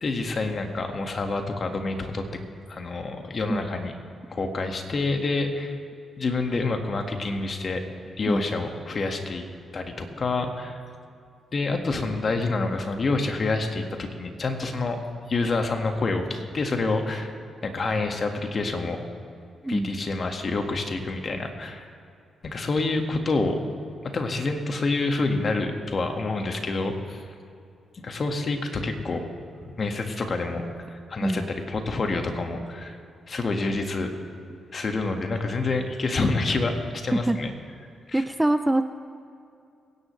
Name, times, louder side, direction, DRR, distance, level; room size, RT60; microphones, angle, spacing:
voice 1, 0.0-2.2 2.7-3.9 4.3-5.8 6.2-7.9 8.2-9.4 9.7-10.8 11.5-15.0 15.3-17.3 17.6-19.0 19.7-21.9 22.4-23.6 24.1-27.2 28.0-29.2 29.6-33.0 33.3-34.1 34.7-37.5 38.1-38.2, left 3 dB, 50° left, 4 dB, 1.8 m, -27 dB
voice 2, 38.1-38.8, right 1 dB, 10° right, 10 dB, 0.6 m, -24 dB
23.0 x 10.5 x 3.3 m, 2.4 s
supercardioid pair, 50°, 0 cm